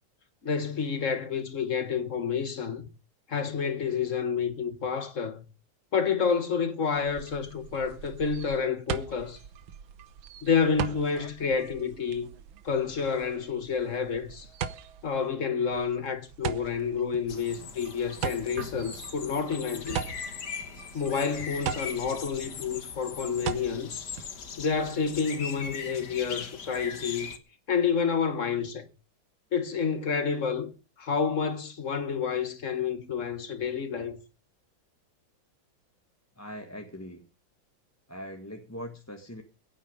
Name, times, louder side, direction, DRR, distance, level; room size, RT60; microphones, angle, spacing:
voice 1, 0.4-2.9 3.3-5.4 5.9-9.4 10.4-12.3 12.6-14.5 15.0-20.0 20.9-24.1 24.6-27.3 27.7-28.9 29.5-30.7 31.0-34.2, left 6 dB, 40° left, 1.8 m, -29 dB
sound 1, 6.9-25.1, right 8 dB, 85° right, 1.8 m, -40 dB
sound 2, 17.3-27.4, left 6 dB, 60° left, 1.9 m, -40 dB
sound 3, 17.4-20.4, right 2 dB, 55° right, 2.2 m, -45 dB
voice 2, 36.4-37.2 38.1-39.4, equal, 10° left, 1.3 m, -41 dB
17.0 x 9.3 x 5.2 m
omnidirectional pair, 2.1 m